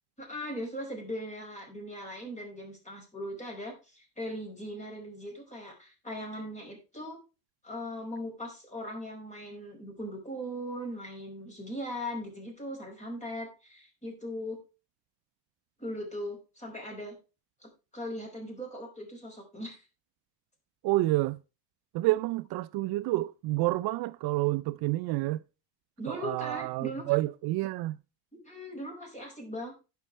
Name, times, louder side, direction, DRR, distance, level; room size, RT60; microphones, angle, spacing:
voice 1, 0.2-7.2 7.6-14.6 15.8-17.2 17.9-19.8 26.0-27.0 28.3-29.7, equal, 15° left, 5.1 m, -39 dB
voice 2, 20.8-21.4 21.9-25.4 26.1-28.0, right 18 dB, 65° right, 0.5 m, -29 dB
16.5 x 5.6 x 3.2 m
cardioid pair, 140°, 40 cm